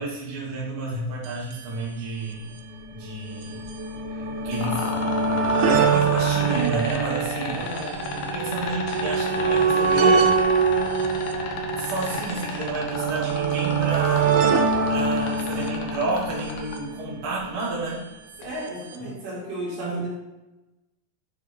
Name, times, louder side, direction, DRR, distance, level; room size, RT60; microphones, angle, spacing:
voice 1, 0.0-2.5 2.9-3.5 4.4-4.8 5.6-7.6 8.3-10.3 11.8-14.3 14.9-18.0 19.8-20.0, right 2 dB, 40° right, -7 dB, 2.2 m, -30 dB
sound 1, 1.2-1.3 1.5-1.6 2.5-17.7 18.7-18.8 18.9-19.0, right 5 dB, 85° right, 3.3 m, -24 dB
sound 2, 4.6-16.8 18.4-18.5, left 6 dB, 70° left, 2.2 m, -32 dB
voice 2, 7.5-7.9 18.4-20.1, equal, 60° right, -5 dB, 4.1 m, -34 dB
9.4 x 4.7 x 5.5 m, 1.0 s
omnidirectional pair, 5.4 m